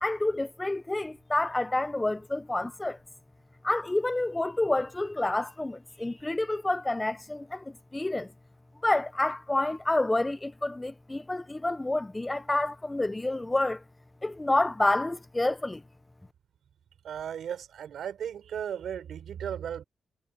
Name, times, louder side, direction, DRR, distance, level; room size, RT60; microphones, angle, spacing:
voice 1, 0.0-3.0 3.6-7.6 7.9-8.3 8.8-13.8 14.2-15.8, left 2 dB, 15° left, 0.5 m, -28 dB
voice 2, 17.0-19.8, right 9 dB, 75° right, 4.9 m, -36 dB
wide cardioid pair, 135°, 0 cm